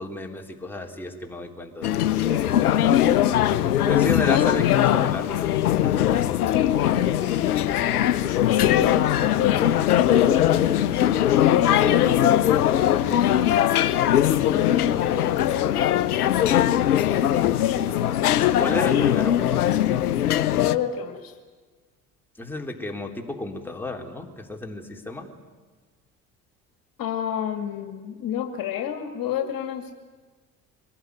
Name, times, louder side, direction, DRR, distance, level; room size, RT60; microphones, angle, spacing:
voice 1, 0.0-2.8 3.8-6.0 8.1-8.6 18.6-19.6 22.4-25.3, left 2 dB, 5° left, 1 dB, 3.6 m, -33 dB
sound 1, 1.8-20.8, left 11 dB, 80° left, 0.7 m, -21 dB
voice 2, 2.9-3.9 4.3-4.9 6.5-7.3 8.5-10.6 11.3-13.9 14.4-16.2 17.4-18.3 20.6-21.3 27.0-29.9, left 9 dB, 50° left, 6 dB, 2.3 m, -29 dB
24.0 x 19.0 x 9.6 m, 1.4 s
figure-of-eight pair, 60°, 45 cm